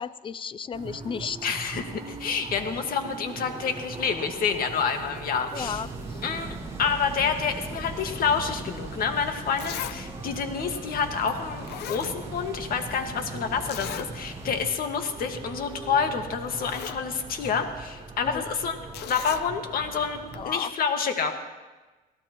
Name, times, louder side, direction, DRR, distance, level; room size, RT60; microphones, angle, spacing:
voice 1, 0.0-1.5 5.5-6.2 9.9-10.0 18.2-18.4 20.3-20.7, left 6 dB, 30° left, 18 dB, 0.5 m, -34 dB
sound 1, 0.7-20.5, right 4 dB, 35° right, 3.6 m, -42 dB
voice 2, 1.4-5.8 6.2-21.3, left 6 dB, 60° left, 5 dB, 1.8 m, -28 dB
sound 2, 5.6-14.7, right 2 dB, 15° right, 2.1 m, -40 dB
Zipper (clothing), 9.6-10.0 10.3-10.4 11.3-11.4 11.6-12.6 12.9-13.0 13.7-14.1 14.5-14.6 15.0-15.2 16.0-16.1 16.4-17.0 18.9-19.5 20.3-20.4, left 12 dB, 75° left, 0.7 m, -37 dB
26.0 x 17.5 x 3.1 m, 1.2 s
cardioid pair, 110°, 17 cm